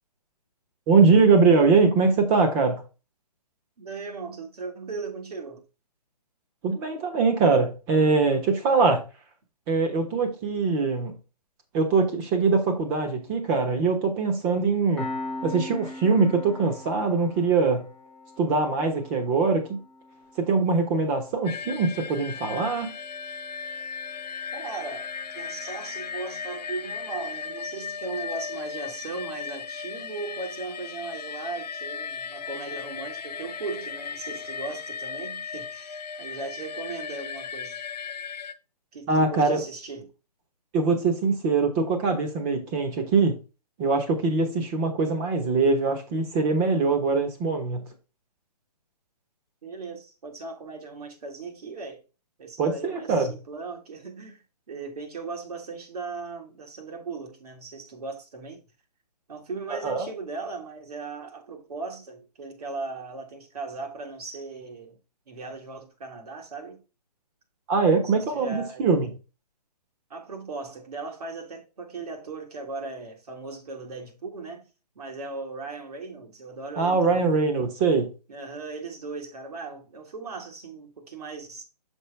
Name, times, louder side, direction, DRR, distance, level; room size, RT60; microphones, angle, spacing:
voice 1, 0.9-2.8 6.6-9.0 9.7-11.1 11.7-15.1 15.4-17.9 18.4-19.8 20.4-22.9 39.1-39.6 40.7-43.4 43.8-47.9 52.6-53.3 59.7-60.1 67.7-69.1 76.8-78.1, right 4 dB, 20° right, 1.1 m, -22 dB
voice 2, 3.8-5.6 24.5-25.1 25.3-37.8 38.9-40.1 49.6-52.0 52.4-58.6 59.3-65.0 65.3-66.8 68.1-68.9 70.1-74.7 75.0-77.3 78.3-81.6, right 3 dB, 65° right, 1.9 m, -38 dB
Piano, 15.0-26.1, left 2 dB, 5° left, 0.7 m, -42 dB
sound 1, 21.5-38.5, left 6 dB, 75° left, 0.8 m, -36 dB
6.3 x 4.8 x 3.3 m
hypercardioid pair, 150°, 21 cm